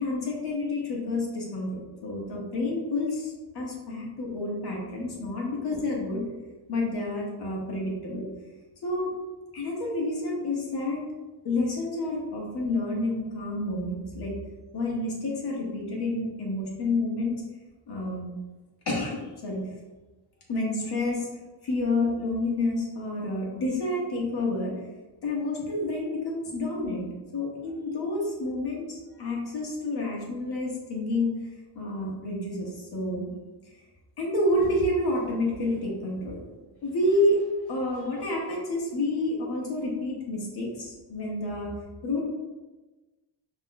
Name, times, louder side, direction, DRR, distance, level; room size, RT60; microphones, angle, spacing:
voice 1, 0.0-6.2 6.7-8.3 8.8-9.1 9.5-11.0 11.4-14.3 14.7-17.4 17.9-18.3 18.9-19.6 20.5-21.3 21.6-24.7 25.2-27.1 27.3-31.3 31.7-33.3 34.2-36.4 36.8-41.7 42.0-42.2, left 2 dB, 60° left, -3 dB, 1.4 m, -29 dB
6.0 x 3.1 x 2.2 m, 1.2 s
cardioid pair, 105°, 44 cm